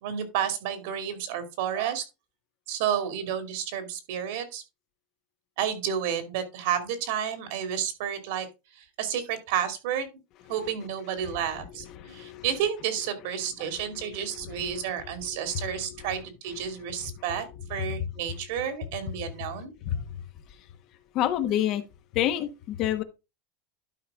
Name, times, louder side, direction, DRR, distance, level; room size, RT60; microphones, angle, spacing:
voice 1, 0.0-2.0 2.7-4.6 5.6-8.5 8.8-10.1 10.5-19.7, right 9 dB, 70° right, 2.5 m, -31 dB
voice 2, 11.9-12.5 13.6-14.8 15.3-15.9 19.8-20.0 21.1-21.8 22.1-23.0, left 11 dB, 45° left, 1.3 m, -29 dB
12.0 x 5.0 x 3.6 m
supercardioid pair, 145°, 0 cm